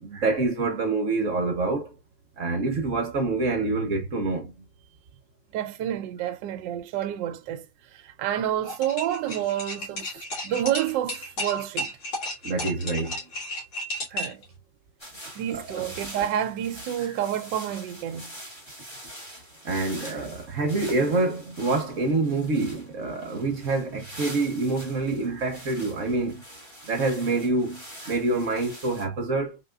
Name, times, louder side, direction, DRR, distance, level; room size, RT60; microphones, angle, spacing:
voice 1, 0.0-1.9 2.4-4.7 12.4-13.2 14.1-14.3 15.5-15.8 17.1-17.2 19.6-26.4 26.8-29.6, right 3 dB, 50° right, 1.1 m, -26 dB
voice 2, 5.5-7.6 7.9-11.9 14.1-14.4 15.4-18.3, right 11 dB, 80° right, 1.2 m, -29 dB
sound 1, 8.6-14.4, left 1 dB, 85° left, 2.7 m, -33 dB
sound 2, 15.0-29.0, equal, 15° left, 1.4 m, -44 dB
4.4 x 3.5 x 2.4 m
omnidirectional pair, 2.0 m